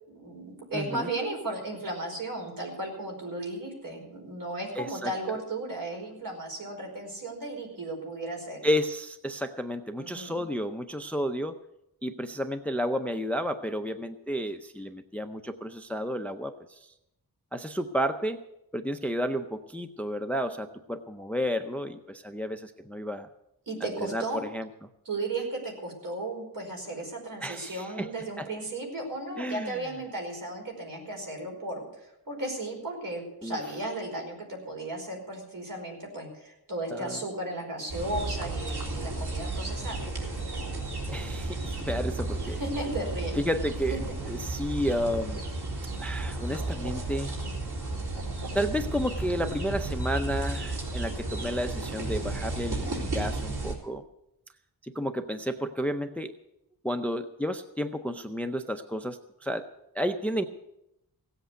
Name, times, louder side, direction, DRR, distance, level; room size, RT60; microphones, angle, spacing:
voice 1, 0.1-8.6 10.0-10.5 23.7-24.4 25.0-40.1 42.4-43.4 43.9-44.0, right 2 dB, 60° right, 1 dB, 5.1 m, -35 dB
voice 2, 0.7-1.1 4.8-5.1 8.6-11.5 12.0-16.9 17.5-18.4 18.7-23.3 23.8-24.2 24.5-24.7 27.4-28.1 28.4-28.5 29.4-29.8 33.4-33.6 36.9-37.2 41.1-42.6 43.4-44.0 44.3-45.4 46.0-47.4 48.5-54.0 54.8-56.3 56.8-59.7 59.9-60.4, equal, 5° left, 9 dB, 0.5 m, -31 dB
sound 1, 37.9-53.7, right 2 dB, 80° right, 3.5 m, -33 dB
17.0 x 8.1 x 8.2 m, 0.85 s
wide cardioid pair, 155°, 38 cm